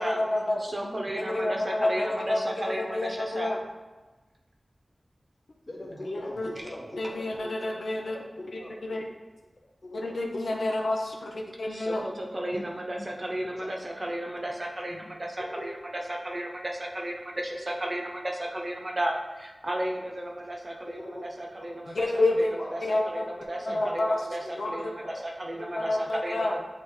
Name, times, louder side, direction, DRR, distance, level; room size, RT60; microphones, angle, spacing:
voice 1, 0.0-0.6 1.2-3.6 6.0-6.5 7.0-8.2 8.8-9.0 10.0-12.0 21.9-22.5 22.8-23.3 23.7-24.3 24.6-24.9 25.7-26.5, left 2 dB, 85° left, -1 dB, 0.7 m, -29 dB
voice 2, 0.6-3.6 11.7-26.6, right 1 dB, 35° right, 0 dB, 0.7 m, -34 dB
voice 3, 5.7-7.6 8.1-8.7 9.8-10.0 12.1-12.7 13.4-13.7 14.9-15.1 15.4-15.7 21.0-21.2 22.6-22.9 23.7-23.8 25.0-25.2 25.6-25.8, left 1 dB, 50° left, -4 dB, 1.7 m, -41 dB
8.4 x 3.5 x 3.2 m, 1.2 s
wide cardioid pair, 75°, 0 cm